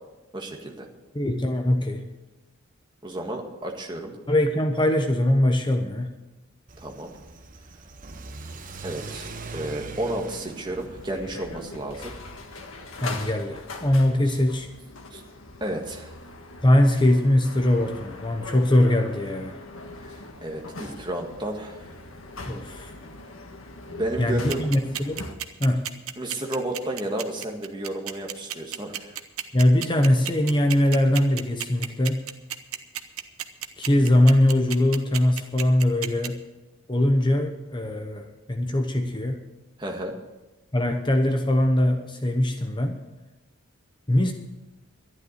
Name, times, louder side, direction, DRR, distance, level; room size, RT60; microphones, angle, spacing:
voice 1, 0.3-0.9 3.0-4.2 6.8-7.1 8.8-12.3 15.1-15.2 15.6-16.1 20.0-21.8 23.9-24.6 26.2-29.1 39.8-40.1, right 1 dB, 20° right, 1 dB, 1.7 m, -32 dB
voice 2, 1.1-2.0 4.3-6.1 13.0-14.7 16.6-19.6 22.5-22.9 24.2-25.3 25.6-25.8 29.5-32.2 33.8-36.4 36.9-39.4 40.7-43.0 44.1-44.3, left 1 dB, 20° left, 5 dB, 0.9 m, -22 dB
Car / Accelerating revving vroom, 6.7-13.4, right 3 dB, 40° right, 0.9 m, -42 dB
sound 1, 9.9-25.3, left 2 dB, 70° left, 1.5 m, -41 dB
sound 2, 24.5-36.3, right 11 dB, 80° right, 0.9 m, -32 dB
12.0 x 11.0 x 6.6 m, 1.1 s
head